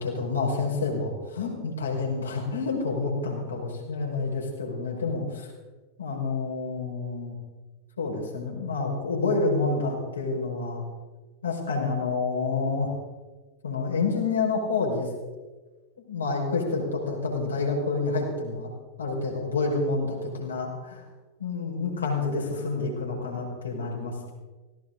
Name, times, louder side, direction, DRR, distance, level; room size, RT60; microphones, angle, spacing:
voice 1, 0.0-5.5 6.0-7.3 8.0-10.8 11.4-12.9 13.6-15.1 16.1-18.7 19.0-21.0 21.4-24.3, left 3 dB, 75° left, -2 dB, 5.2 m, -28 dB
19.5 x 17.0 x 3.8 m, 1.3 s
figure-of-eight pair, 90°, 0 cm